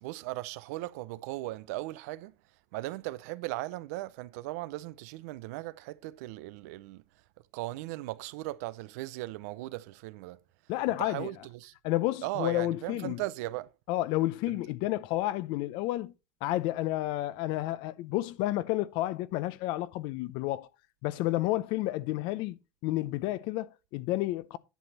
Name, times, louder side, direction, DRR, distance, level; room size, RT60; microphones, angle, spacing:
voice 1, 0.0-2.3 2.7-7.0 7.5-10.4 11.0-11.7 12.2-13.7 14.5-14.6, right 18 dB, 85° right, 0.6 m, -38 dB
voice 2, 10.7-11.3 11.8-13.2 13.9-16.1 16.4-20.7 21.0-24.6, left 16 dB, 75° left, 0.6 m, -31 dB
10.5 x 6.1 x 4.2 m
supercardioid pair, 95°, 8 cm